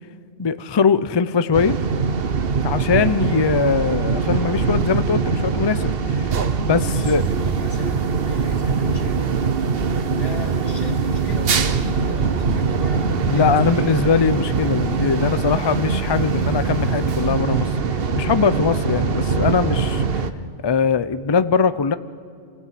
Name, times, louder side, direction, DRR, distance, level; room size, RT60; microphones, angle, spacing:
voice 1, 0.4-1.8 2.6-7.2 13.3-17.8 18.1-20.2 20.6-21.9, left 5 dB, 35° left, 13 dB, 0.5 m, -21 dB
sound 1, 1.5-20.3, right 5 dB, 55° right, 1.1 m, -22 dB
voice 2, 6.8-9.4 10.1-14.1, right 1 dB, 85° left, 0 dB, 3.7 m, -34 dB
sound 2, 11.5-19.7, right 2 dB, 15° left, 3.3 m, -35 dB
27.5 x 16.0 x 8.4 m, 2.5 s
omnidirectional pair, 1.2 m